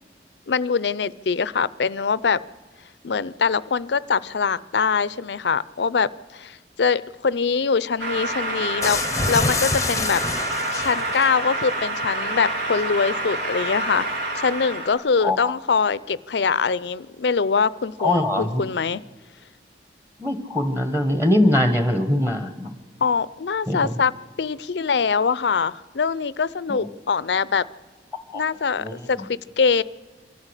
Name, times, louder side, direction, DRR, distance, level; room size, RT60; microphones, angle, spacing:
voice 1, 0.5-2.4 3.0-9.0 9.3-10.2 10.7-14.1 14.4-19.0 23.0-24.1 24.4-27.6 28.3-29.8, left 5 dB, 75° left, 19 dB, 0.5 m, -23 dB
sound 1, 8.0-14.9, right 1 dB, 85° right, 2.7 m, -28 dB
sound 2, 8.8-11.3, left 4 dB, 20° left, 0.7 m, -26 dB
voice 2, 15.2-15.5 18.0-18.6 20.2-22.7 23.7-24.0 26.7-26.8 28.3-28.4 28.8-29.0, left 1 dB, 15° right, 7 dB, 1.4 m, -22 dB
24.5 x 14.0 x 8.2 m, 1.3 s
head